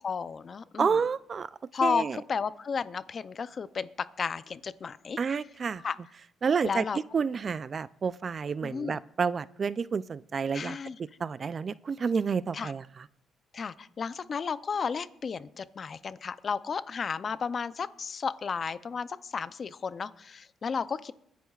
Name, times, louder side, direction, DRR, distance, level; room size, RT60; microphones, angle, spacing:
voice 1, 0.0-0.9 1.7-5.2 5.8-6.0 6.6-7.0 8.6-9.0 10.5-11.0 12.5-12.7 13.5-21.1, left 5 dB, 45° left, 15 dB, 0.5 m, -33 dB
voice 2, 0.8-1.5 1.8-2.2 5.2-5.8 6.4-6.8 7.1-10.8 11.2-12.8, right 5 dB, 45° right, 17 dB, 0.4 m, -29 dB
23.0 x 10.0 x 2.4 m, 0.73 s
cardioid pair, 90°, 0 cm